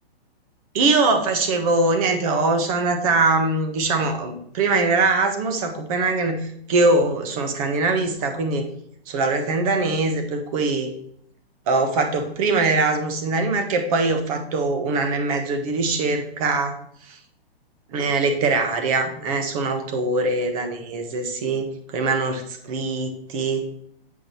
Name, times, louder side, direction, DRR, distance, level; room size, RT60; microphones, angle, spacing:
voice 1, 0.7-8.7 9.1-10.9 11.7-16.7 17.9-23.6, right 3 dB, 35° right, 6 dB, 1.4 m, -22 dB
8.5 x 5.0 x 4.3 m, 0.68 s
hypercardioid pair, 155°, 31 cm